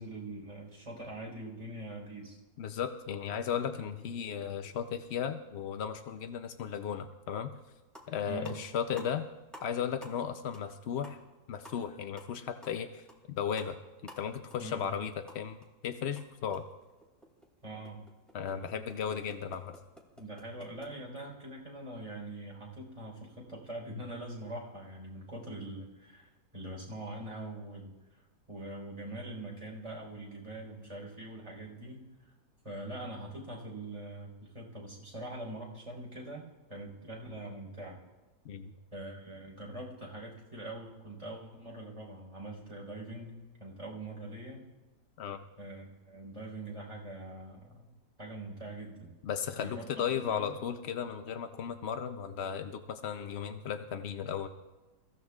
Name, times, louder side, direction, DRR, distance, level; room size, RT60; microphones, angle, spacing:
voice 1, 0.0-2.4 8.3-8.6 14.6-14.9 17.6-18.0 19.0-19.1 20.2-28.2 28.5-32.1 32.6-38.0 38.9-44.6 45.6-47.9 48.2-49.1 49.6-50.5, right 1 dB, 20° right, -2 dB, 4.2 m, -43 dB
voice 2, 2.6-7.5 8.1-9.2 9.6-11.2 11.5-13.0 13.4-13.8 14.2-15.6 15.8-16.6 18.3-19.7 38.4-38.7 45.2-45.4 49.2-54.5, left 8 dB, 65° left, 8 dB, 0.6 m, -35 dB
sound 1, 7.5-7.6 7.8-8.2 8.4-9.7 10.0-10.3 10.5-10.7 11.0-15.7 16.0-20.9, equal, ahead, 2.3 m, -53 dB
28.5 x 15.5 x 2.4 m, 1.1 s
omnidirectional pair, 1.8 m